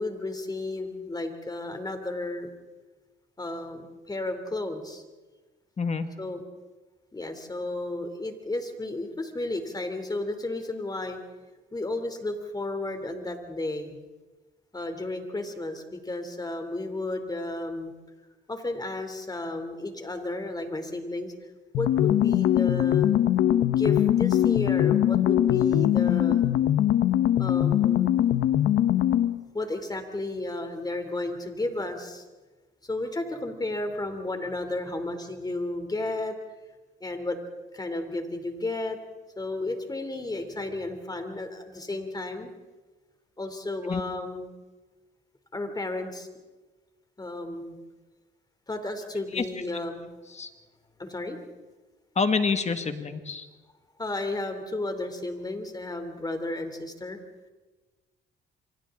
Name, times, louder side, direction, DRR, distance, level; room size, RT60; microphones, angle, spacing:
voice 1, 0.0-2.5 3.4-5.0 6.2-6.4 7.1-11.2 11.7-14.0 14.7-17.9 18.5-21.3 21.8-23.1 23.8-26.4 27.4-28.1 29.5-32.2 32.8-36.3 37.0-37.4 37.7-39.0 39.4-42.5 43.4-44.5 45.5-46.3 47.2-47.8 48.7-50.1 51.0-51.4 54.0-57.2, left 2 dB, 20° left, 6 dB, 3.0 m, -33 dB
sound 1, 21.7-29.4, left 11 dB, 80° left, 0.9 m, -22 dB
voice 2, 52.2-53.5, left 4 dB, 35° left, 8 dB, 1.9 m, -27 dB
28.0 x 24.5 x 3.8 m, 1.2 s
cardioid pair, 90°, 20 cm